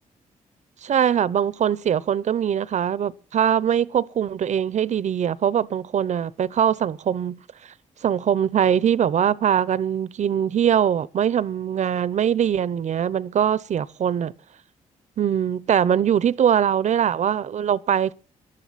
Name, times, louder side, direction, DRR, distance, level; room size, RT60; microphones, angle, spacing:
voice 1, 0.8-7.4 8.0-14.3 15.2-18.1, right 9 dB, 60° right, 0.8 m, -22 dB
18.5 x 11.5 x 4.2 m
supercardioid pair, 65°, 14 cm